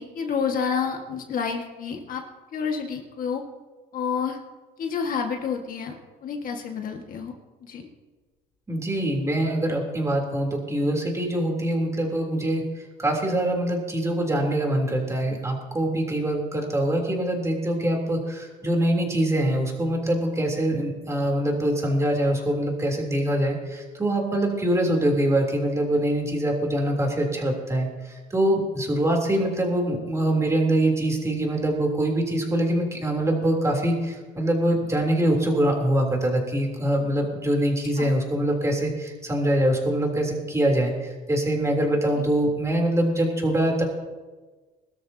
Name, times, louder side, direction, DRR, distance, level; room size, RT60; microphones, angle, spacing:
voice 1, 0.0-2.2 2.5-3.4 3.9-4.4 4.8-5.9 6.2-7.3 7.6-7.9 38.0-38.1 42.2-42.3, left 6 dB, 55° left, 3 dB, 1.7 m, -29 dB
voice 2, 8.7-12.6 13.0-27.9 28.3-40.9 41.3-43.8, right 1 dB, 15° right, 0 dB, 3.3 m, -24 dB
22.0 x 13.0 x 2.8 m, 1.3 s
cardioid pair, 110°, 17 cm